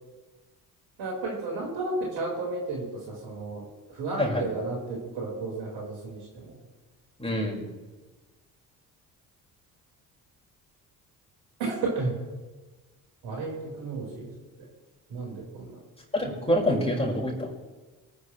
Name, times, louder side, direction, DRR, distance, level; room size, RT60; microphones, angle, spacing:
voice 1, 1.0-6.6 11.6-12.1 13.2-14.3 15.1-15.8, right 3 dB, 70° right, -2 dB, 5.0 m, -33 dB
voice 2, 7.2-7.6 16.1-17.5, left 1 dB, 10° left, -2 dB, 5.2 m, -26 dB
24.0 x 9.9 x 3.3 m, 1.3 s
hypercardioid pair, 50°, 47 cm